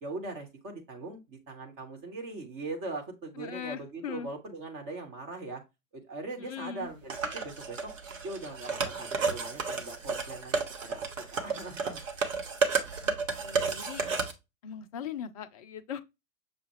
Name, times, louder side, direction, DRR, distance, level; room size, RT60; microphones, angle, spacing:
voice 1, 0.0-5.6 5.9-7.9 8.2-12.0, right 2 dB, 30° right, 1.1 m, -41 dB
voice 2, 3.4-4.3 6.4-6.9 12.7-13.2 13.4-14.1 14.6-16.0, left 8 dB, 30° left, 0.4 m, -40 dB
sound 1, 7.1-14.3, right 4 dB, 65° right, 1.1 m, -32 dB
6.5 x 2.3 x 3.1 m
figure-of-eight pair, 95°, 42 cm